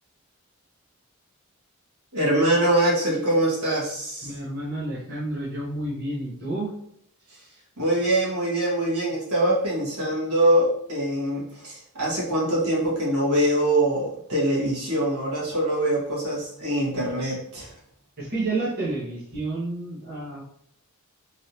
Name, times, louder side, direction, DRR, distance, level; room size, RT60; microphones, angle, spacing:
voice 1, 2.1-4.3 7.8-17.7, right 1 dB, 90° right, -5 dB, 1.3 m, -23 dB
voice 2, 4.2-6.7 18.2-20.4, right 2 dB, 45° right, -6 dB, 0.8 m, -30 dB
3.2 x 2.6 x 2.8 m, 0.69 s
head